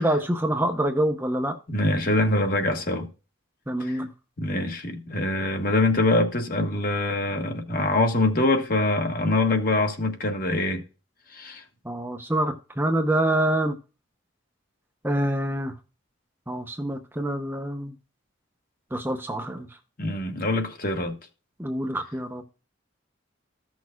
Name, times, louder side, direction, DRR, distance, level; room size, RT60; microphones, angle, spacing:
voice 1, 0.0-1.6 3.7-4.1 11.8-13.7 15.0-15.7 16.5-17.9 18.9-19.7 21.6-22.4, right 1 dB, 10° right, 0.7 m, -26 dB
voice 2, 1.7-3.1 3.8-4.0 4.4-10.8 11.3-11.6 20.0-21.2, left 2 dB, 45° left, 1.4 m, -24 dB
15.0 x 6.2 x 2.3 m
head